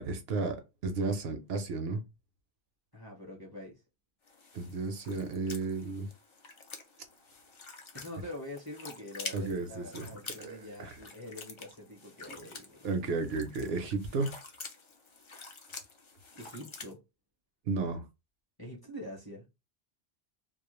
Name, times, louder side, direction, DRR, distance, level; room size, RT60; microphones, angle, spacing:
voice 1, 0.0-2.0 4.5-6.1 9.3-10.1 10.4-10.9 12.8-14.3 17.6-18.0, right 3 dB, 70° right, 0.8 m, -33 dB
voice 2, 2.9-3.8 7.9-12.8 16.3-17.0 18.6-19.5, left 1 dB, 25° left, 0.7 m, -45 dB
sound 1, 4.3-16.9, left 4 dB, 50° left, 0.3 m, -48 dB
2.3 x 2.1 x 3.0 m
omnidirectional pair, 1.1 m